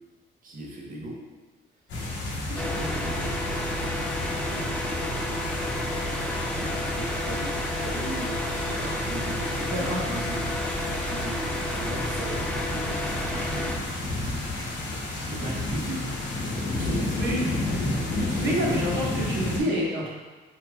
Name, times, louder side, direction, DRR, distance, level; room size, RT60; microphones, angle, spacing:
voice 1, 0.4-1.2 2.5-3.5 4.4-5.7 6.3-14.7 15.2-16.0 16.5-17.6 18.2-18.7 19.5-19.6, right 1 dB, 45° right, -1 dB, 0.9 m, -39 dB
sound 1, 1.9-19.6, left 2 dB, 70° left, 0.9 m, -32 dB
sound 2, 2.6-13.8, left 1 dB, 5° left, 0.4 m, -30 dB
voice 2, 9.7-10.0 17.2-17.5 18.4-20.1, equal, 60° right, -4 dB, 1.2 m, -27 dB
4.7 x 3.4 x 2.2 m, 1.3 s
cardioid pair, 90°, 20 cm